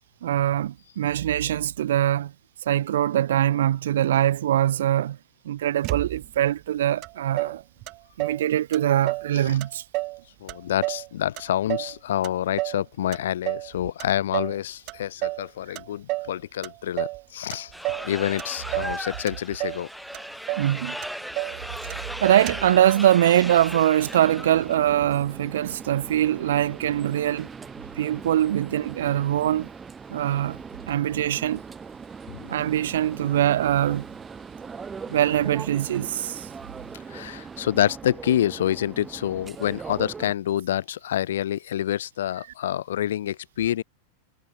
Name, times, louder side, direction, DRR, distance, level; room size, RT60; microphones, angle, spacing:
voice 1, 0.2-2.3 2.7-5.2 5.4-7.6 8.2-9.8 20.6-21.0 22.2-27.5 28.0-29.7 30.1-30.6 30.9-31.6 32.5-34.0 35.1-36.5, right 11 dB, 60° right, 0.8 m, -23 dB
Motor vehicle (road), 5.8-6.5 7.0-7.1 7.4-8.4 8.7-9.3 9.6-10.2 10.5-12.0 12.2-12.8 13.1-13.7 14.0-14.6 14.9-15.5 15.8-16.3 16.6-17.2 17.5-18.1 18.4-19.0 19.3-19.8 20.1-20.2 20.5-20.7 21.0-21.6 21.9-22.0 22.2-22.8, right 22 dB, 40° right, 1.1 m, -30 dB
voice 2, 10.4-17.7 18.0-19.9 32.3-32.6 35.1-35.2 37.1-43.8, left 11 dB, 60° left, 1.7 m, -27 dB
sound 1, 17.7-24.8, equal, ahead, 4.4 m, -36 dB
sound 2, 24.0-40.3, right 5 dB, 15° right, 3.0 m, -40 dB
figure-of-eight pair, 90°, 0 cm